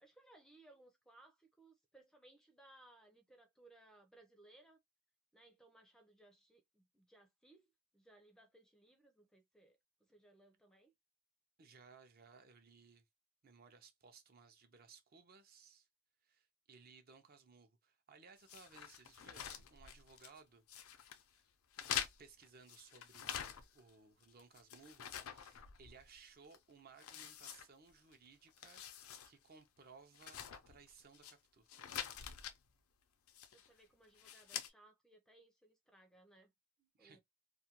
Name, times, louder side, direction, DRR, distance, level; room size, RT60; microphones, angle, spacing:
voice 1, 0.0-4.8 5.3-7.7 7.9-10.9 33.5-36.5 37.0-37.2, right 2 dB, 5° left, 0.4 m, -65 dB
voice 2, 11.6-13.0 13.4-15.9 16.2-20.7 21.3-21.4 22.2-28.8 29.3-31.7 36.8-37.2, right 5 dB, 45° right, 0.5 m, -62 dB
sound 1, 18.5-20.4 20.7-21.2 21.7-23.9 24.2-26.1 26.5-26.6 27.0-28.1 28.5-29.3 29.6-29.7 30.1-31.3 31.7-32.6 33.3-33.7 34.1-34.7, left 9 dB, 75° left, 0.4 m, -46 dB
2.4 x 2.2 x 2.8 m
head